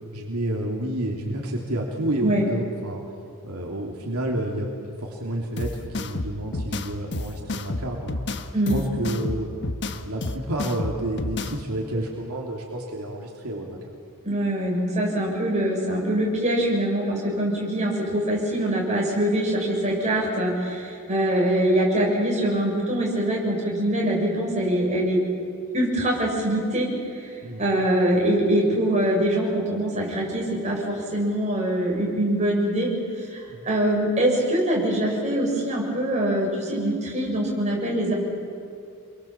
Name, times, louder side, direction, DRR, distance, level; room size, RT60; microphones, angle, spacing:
voice 1, 0.1-3.0 3.4-4.7 5.0-8.1 8.7-9.5 10.0-13.8 27.4-27.7 33.5-33.7, right 1 dB, 75° right, -1 dB, 3.2 m, -29 dB
sound 1, 5.6-11.6, left 2 dB, 50° left, 1.3 m, -30 dB
voice 2, 14.2-25.2 25.7-26.9 27.2-27.3 27.6-32.9 33.3-38.1, right 1 dB, 30° right, -2 dB, 7.0 m, -23 dB
28.5 x 23.0 x 7.4 m, 2.4 s
head